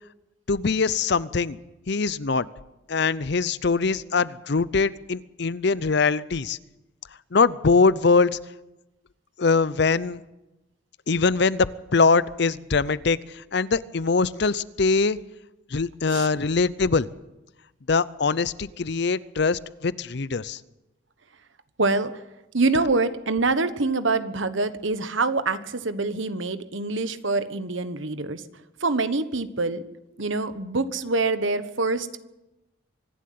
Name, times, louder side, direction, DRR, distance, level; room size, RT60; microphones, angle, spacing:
voice 1, 0.5-1.6 1.9-2.5 2.9-6.6 7.3-8.4 9.4-10.2 11.1-15.2 15.7-17.1 17.9-20.6, left 4 dB, 55° left, 18 dB, 0.6 m, -22 dB
voice 2, 21.8-22.1 22.5-28.4 28.8-29.8 30.2-32.2, right 3 dB, 70° right, 12 dB, 1.2 m, -25 dB
24.5 x 11.5 x 9.4 m, 0.97 s
head